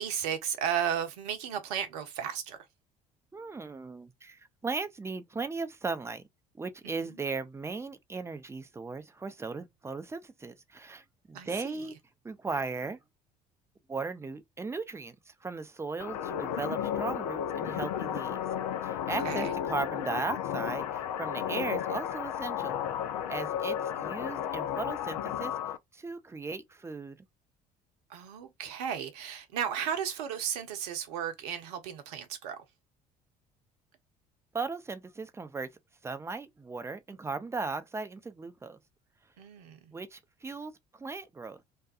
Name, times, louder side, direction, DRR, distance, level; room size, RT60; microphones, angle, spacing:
voice 1, 0.0-2.6 6.8-7.1 11.3-11.8 19.2-19.5 28.1-32.6 39.4-39.9, right 9 dB, 70° right, 0.7 m, -34 dB
voice 2, 3.3-6.3 6.6-12.0 12.2-13.0 13.9-18.4 18.8-22.8 23.3-27.3 34.5-35.7 36.0-38.8 39.9-41.6, right 3 dB, 15° right, 0.5 m, -37 dB
sound 1, 16.0-25.8, left 9 dB, 75° left, 0.4 m, -33 dB
2.7 x 2.2 x 2.3 m
hypercardioid pair, 55°, 20 cm